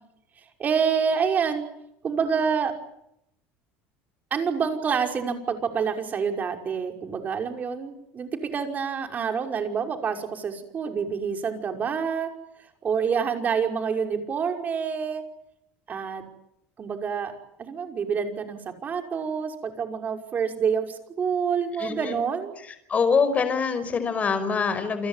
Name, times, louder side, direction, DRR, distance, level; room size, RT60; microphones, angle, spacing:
voice 1, 0.6-1.6 2.0-2.7 4.3-12.3 12.8-15.2 15.9-16.2 16.8-17.3 17.6-22.5, right 6 dB, 30° right, 5 dB, 5.6 m, -27 dB
voice 2, 21.8-22.2 22.9-25.1, left 5 dB, 25° left, 12 dB, 5.4 m, -24 dB
29.0 x 21.5 x 9.2 m, 0.78 s
cardioid pair, 140°, 6 cm